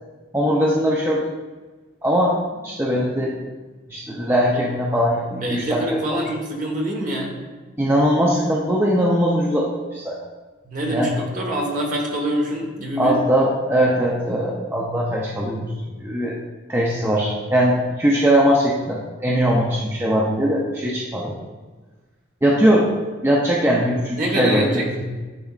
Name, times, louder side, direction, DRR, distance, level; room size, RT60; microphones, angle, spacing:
voice 1, 0.3-1.3 2.0-2.4 2.6-3.4 3.9-6.2 7.8-10.2 10.9-11.2 13.0-15.7 16.0-16.4 16.7-21.4 22.4-22.9 23.2-25.0, equal, 10° right, -4 dB, 0.5 m, -20 dB
voice 2, 5.4-7.4 10.6-13.2 24.2-24.8, right 1 dB, 40° right, -1 dB, 1.1 m, -25 dB
10.5 x 4.2 x 2.4 m, 1.3 s
head